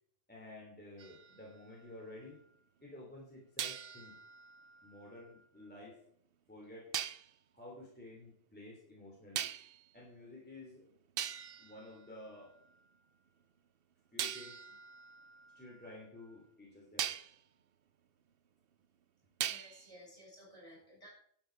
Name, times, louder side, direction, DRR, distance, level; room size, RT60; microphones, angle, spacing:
voice 1, 0.3-2.4 2.8-4.2 4.8-6.0 6.5-7.0 7.5-9.5 9.9-10.9 11.6-12.5 14.1-14.6 15.5-17.1, left 1 dB, 10° left, -3 dB, 2.9 m, -52 dB
sound 1, 1.0-2.4 3.6-5.7 6.9-7.3 9.4-9.9 10.7-10.8 11.2-12.8 14.2-16.4 17.0-17.4 19.4-20.0, right 9 dB, 60° right, 0.8 m, -42 dB
voice 2, 19.4-21.1, equal, 40° left, -2 dB, 6.1 m, -56 dB
12.0 x 7.9 x 5.1 m, 0.65 s
omnidirectional pair, 1.2 m